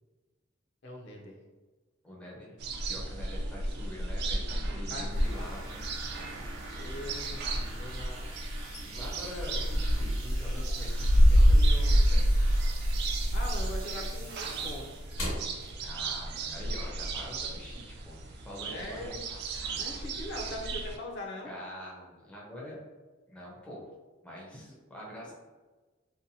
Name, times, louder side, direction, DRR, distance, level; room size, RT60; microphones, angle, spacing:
voice 1, 0.8-1.4 4.9-5.5 6.7-8.4 13.3-14.9 18.6-19.2 19.7-21.5 24.7-24.8, left 1 dB, 60° left, 0 dB, 0.5 m, -41 dB
voice 2, 2.0-2.6 2.9-5.8 8.8-12.3 15.8-19.2 21.4-22.8 23.3-23.8 24.2-25.3, left 1 dB, 5° left, -5 dB, 0.5 m, -45 dB
sound 1, 2.6-21.0, equal, 55° right, 0.3 m, -29 dB
sound 2, 5.1-15.2, right 2 dB, 75° right, 0.7 m, -47 dB
sound 3, 8.6-12.9 13.2-16.5 16.8-17.0 17.5-17.8, equal, 90° left, 1.2 m, -45 dB
2.7 x 2.1 x 2.6 m, 1.3 s
head